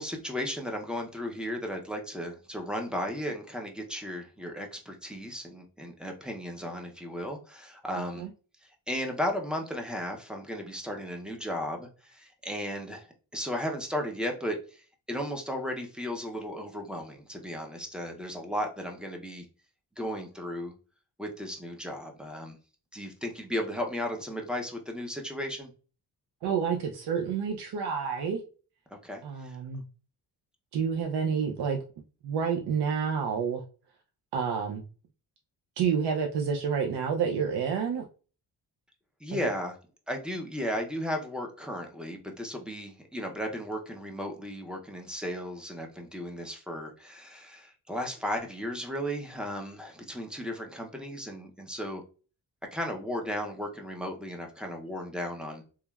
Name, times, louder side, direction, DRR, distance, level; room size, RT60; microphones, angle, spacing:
voice 1, 0.0-8.3 8.9-19.5 20.0-20.7 21.2-22.6 22.9-25.7 28.9-29.6 39.2-39.8 40.1-52.0 52.7-55.6, equal, ahead, 2 dB, 0.4 m, -35 dB
voice 2, 7.9-8.3 26.4-28.4 29.2-29.8 30.7-31.8 32.2-33.6 34.3-34.8 35.8-38.0, right 6 dB, 75° right, 2 dB, 0.5 m, -29 dB
3.1 x 2.2 x 2.2 m, 0.36 s
cardioid pair, 115°, 40 cm